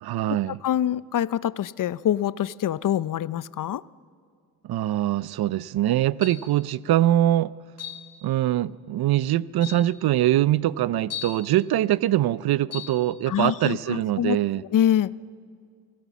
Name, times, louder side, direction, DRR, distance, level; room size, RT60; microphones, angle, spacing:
voice 1, 0.0-0.6 4.6-7.5 8.2-14.6, right 13 dB, 75° right, 20 dB, 0.6 m, -23 dB
voice 2, 0.6-3.8 13.3-14.4 14.7-15.1, left 11 dB, 55° left, 19 dB, 0.6 m, -25 dB
sound 1, 6.2-6.6 7.8-8.1 9.0-9.1 9.6-9.9 11.1-11.4 12.7-13.0, left 10 dB, 40° left, 2.9 m, -36 dB
24.5 x 17.5 x 7.3 m, 2.2 s
cardioid pair, 80°, 38 cm